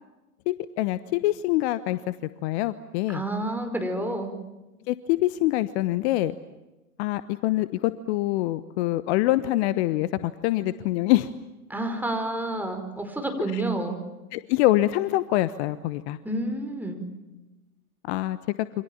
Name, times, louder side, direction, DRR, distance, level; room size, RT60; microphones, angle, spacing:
voice 1, 0.5-2.0 2.4-3.2 4.9-6.3 7.0-11.3 13.5-13.6 14.3-16.2 18.1-18.4, left 16 dB, 45° left, 15 dB, 1.1 m, -25 dB
voice 2, 3.1-4.3 11.7-14.0 16.2-17.0, right 1 dB, 5° right, 5 dB, 5.3 m, -29 dB
28.5 x 26.0 x 7.4 m, 1.0 s
hypercardioid pair, 100°, 45 cm